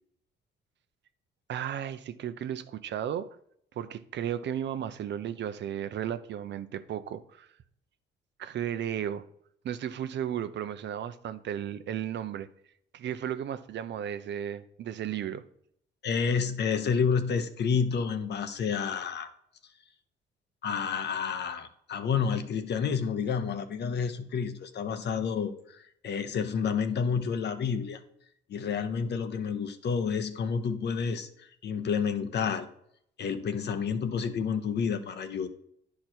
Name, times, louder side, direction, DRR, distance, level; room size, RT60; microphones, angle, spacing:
voice 1, 1.5-3.3 3.8-7.5 8.4-9.2 9.6-12.5 12.9-15.4, right 9 dB, 65° right, 0.7 m, -34 dB
voice 2, 16.0-19.3 20.6-28.0 28.5-31.3 31.6-32.7 33.2-35.5, left 6 dB, 60° left, 0.9 m, -29 dB
10.5 x 4.7 x 4.4 m
cardioid pair, 90°, 20 cm